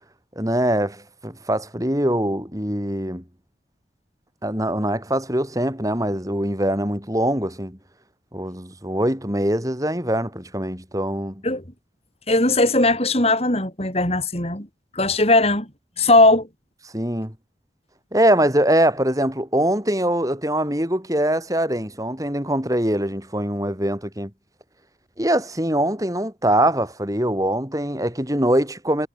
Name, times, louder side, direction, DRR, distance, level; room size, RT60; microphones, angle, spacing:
voice 1, 0.4-3.2 4.4-7.8 8.3-11.4 16.9-17.3 18.1-24.3 25.2-29.1, right 1 dB, 20° right, 7.5 m, -23 dB
voice 2, 12.3-14.7 14.9-15.7 16.0-16.5, left 2 dB, 35° left, 7.2 m, -18 dB
head